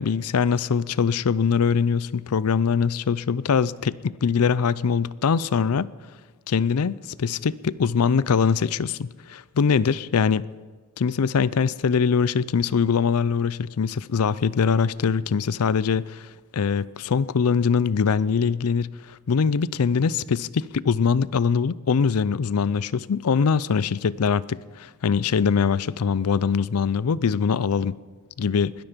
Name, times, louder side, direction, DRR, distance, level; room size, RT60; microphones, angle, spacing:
voice 1, 0.0-5.9 6.5-10.4 11.0-16.3 16.5-28.0 28.4-28.8, left 6 dB, 80° left, 0.5 m, -22 dB
21.0 x 13.0 x 5.2 m
head